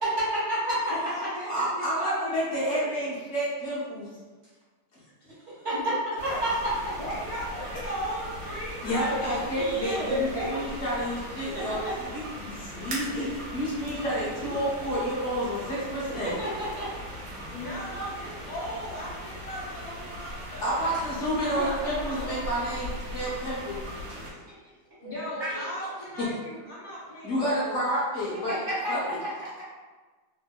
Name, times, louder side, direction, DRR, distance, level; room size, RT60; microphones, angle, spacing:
voice 1, 0.0-0.9 5.6-5.8 6.4-6.9 9.1-9.2 9.6-10.3 11.5-11.9 16.2-16.9 17.3-17.5 21.2-21.9 24.1-24.2 25.0-25.1 25.4-25.6 28.7-29.0 29.2-29.6, right 1 dB, 45° right, -9 dB, 1.0 m, -30 dB
voice 2, 0.9-3.1 5.7-6.4 6.9-9.2 10.3-10.6 13.0-13.4 13.6-13.8 17.5-20.8 21.4-22.7 25.0-27.8, equal, 40° left, -8 dB, 1.1 m, -37 dB
voice 3, 1.4-4.1 8.8-13.3 13.5-16.4 20.6-23.9 26.2-26.3 27.2-29.2, equal, 65° left, -8 dB, 0.7 m, -30 dB
sound 1, 6.2-24.3, equal, 75° right, 1.5 m, -39 dB
3.4 x 2.7 x 2.2 m, 1.3 s
omnidirectional pair, 2.2 m